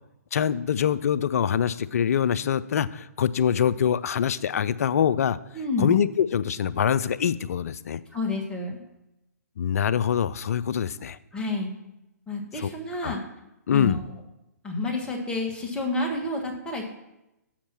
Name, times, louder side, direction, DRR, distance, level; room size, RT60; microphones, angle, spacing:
voice 1, 0.3-5.4 5.8-8.0 9.6-11.2 12.6-12.7 13.0-13.2 13.7-14.0, left 8 dB, 60° left, 16 dB, 0.4 m, -24 dB
voice 2, 5.5-5.9 8.1-8.8 11.3-11.7 12.3-13.2 13.7-14.0 14.6-16.8, left 2 dB, 10° left, 0 dB, 1.3 m, -29 dB
7.3 x 5.3 x 5.9 m, 0.90 s
hypercardioid pair, 130°, 9 cm